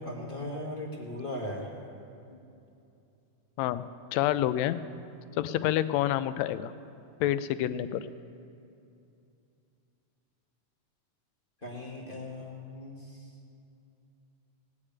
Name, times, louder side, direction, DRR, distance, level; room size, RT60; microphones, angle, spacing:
voice 1, 0.0-1.7 2.3-2.4 11.6-13.3, left 1 dB, 30° left, -2 dB, 0.9 m, -38 dB
voice 2, 4.1-4.8 5.4-6.7 7.2-8.0, left 13 dB, 80° left, 13 dB, 1.7 m, -28 dB
18.5 x 6.6 x 8.7 m, 2.6 s
omnidirectional pair, 3.4 m